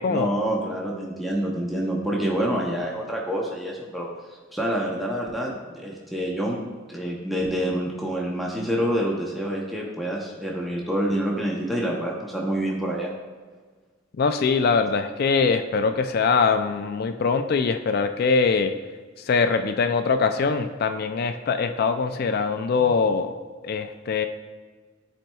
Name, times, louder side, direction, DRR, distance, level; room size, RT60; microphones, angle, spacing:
voice 1, 0.1-4.1 4.5-13.1, right 1 dB, ahead, -3 dB, 0.8 m, -27 dB
voice 2, 14.2-18.7 19.2-23.4 23.6-24.3, left 5 dB, 50° left, 8 dB, 0.4 m, -22 dB
12.0 x 4.4 x 2.3 m, 1.5 s
head